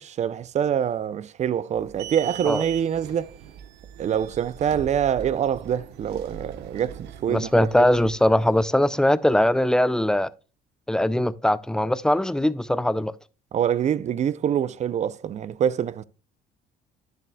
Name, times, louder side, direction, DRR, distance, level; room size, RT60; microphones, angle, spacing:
voice 1, 0.0-3.3 4.0-7.9 13.5-16.0, right 9 dB, 40° right, 0.5 m, -25 dB
sound 1, 1.7-8.6, right 9 dB, 85° right, 1.1 m, -41 dB
voice 2, 7.3-10.3 10.9-13.1, left 1 dB, 5° left, 0.4 m, -21 dB
10.0 x 7.5 x 2.3 m
cardioid pair, 110°, 17 cm